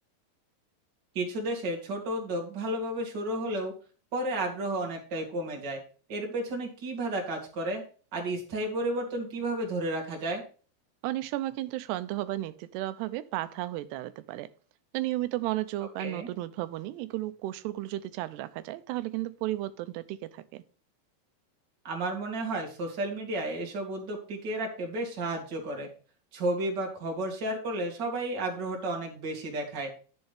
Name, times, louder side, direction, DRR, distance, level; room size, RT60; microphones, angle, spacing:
voice 1, 1.1-3.7 4.1-5.8 6.1-7.8 8.1-10.4 16.0-16.3 21.8-25.9 26.3-29.9, right 1 dB, 30° right, 2.3 m, -32 dB
voice 2, 11.0-14.5 14.9-20.6, right 16 dB, 90° right, 2.7 m, -33 dB
10.5 x 7.6 x 3.5 m
omnidirectional pair, 4.7 m